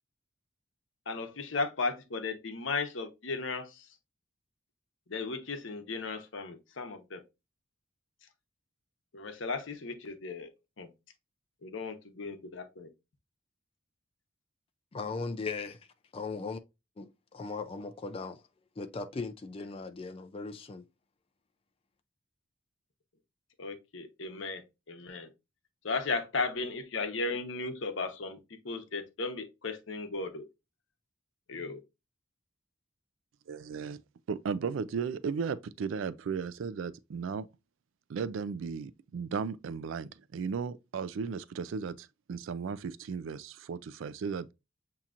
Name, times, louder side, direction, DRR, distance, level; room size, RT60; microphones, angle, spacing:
voice 1, 1.1-3.9 5.1-7.2 9.1-10.5 10.8-10.9 11.6-12.9 23.6-25.3 25.8-28.4 28.6-30.4 31.5-31.8, left 3 dB, 65° left, 0.9 m, -35 dB
voice 2, 14.9-15.8 16.1-16.6 17.0-18.4 18.8-20.8, left 4 dB, 30° left, 0.4 m, -38 dB
voice 3, 33.5-34.0 34.3-37.5 38.1-44.5, right 6 dB, 70° right, 0.3 m, -35 dB
7.1 x 2.9 x 2.4 m
head